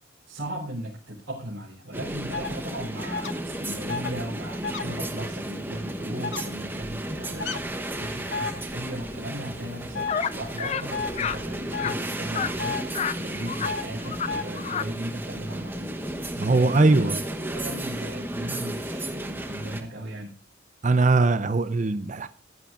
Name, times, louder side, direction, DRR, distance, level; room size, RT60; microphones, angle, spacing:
voice 1, 0.3-12.8 13.1-16.0 16.2-20.3, right 1 dB, 80° right, 3.5 m, -37 dB
sound 1, 1.9-19.8, right 1 dB, 10° right, 1.1 m, -34 dB
sound 2, 2.3-2.5 3.1-3.3 3.9-4.1 4.6-4.8 6.2-6.4 7.4-7.6 8.3-8.5 9.9-10.1 10.9-11.1 11.7-11.9 12.6-12.8 13.6-13.8 14.3-14.4, left 5 dB, 65° left, 0.8 m, -31 dB
sound 3, 10.1-10.3 10.6-10.8 11.1-11.4 11.7-11.9 12.3-12.5 12.9-13.2 13.5-13.7 14.0-14.3 14.5-14.9, left 7 dB, 35° left, 0.4 m, -29 dB
voice 2, 16.4-17.1 20.8-22.3, right 3 dB, 40° right, 0.5 m, -20 dB
15.5 x 11.0 x 2.5 m
head